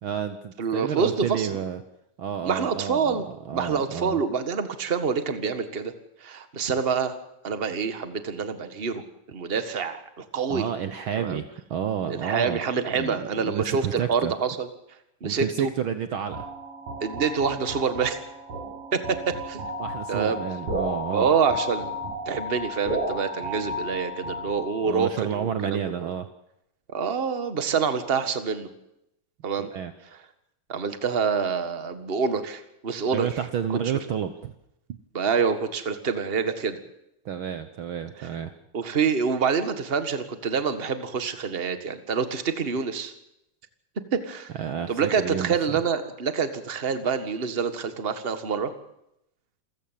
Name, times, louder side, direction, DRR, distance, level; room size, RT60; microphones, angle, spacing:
voice 1, 0.0-1.8 2.2-4.2 10.5-12.6 12.9-14.3 15.2-16.5 19.8-21.3 24.8-26.3 29.6-29.9 33.1-34.5 34.9-35.0 37.2-38.5 44.6-45.8, right 8 dB, 85° right, 10 dB, 1.1 m, -30 dB
voice 2, 0.6-1.6 2.4-3.2 3.5-5.9 6.2-7.1 7.4-9.0 9.3-10.6 11.1-11.4 12.1-14.7 15.2-15.7 17.0-18.2 18.9-19.6 20.1-20.4 21.1-21.9 22.2-25.8 26.9-28.7 29.4-29.7 30.7-33.3 33.7-33.8 35.1-36.8 38.7-43.1 44.1-44.5 44.9-48.7, right 6 dB, 30° right, 10 dB, 1.1 m, -26 dB
sound 1, 16.3-25.0, equal, 60° right, 7.6 m, -33 dB
28.0 x 15.5 x 7.5 m, 0.82 s
omnidirectional pair, 3.7 m